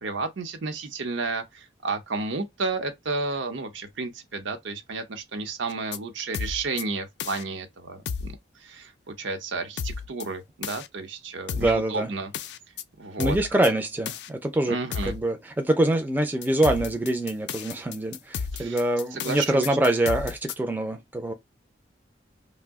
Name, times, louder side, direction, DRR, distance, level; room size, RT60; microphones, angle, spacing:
voice 1, 0.0-8.3 8.6-12.3 13.0-13.4 14.7-15.2 18.5-18.8 19.1-19.8, right 3 dB, 90° right, 0.7 m, -32 dB
sound 1, 5.7-6.0 6.3-6.8 7.2-7.4 8.1-8.4 9.8-10.2 10.6-10.9 11.5-11.8 12.3-12.8 13.2-13.7 14.1-14.3 14.9-15.2 16.4-20.5, left 6 dB, 65° left, 0.3 m, -33 dB
voice 2, 11.5-12.1 13.2-21.3, right 1 dB, 10° right, 0.4 m, -25 dB
2.7 x 2.0 x 3.4 m
head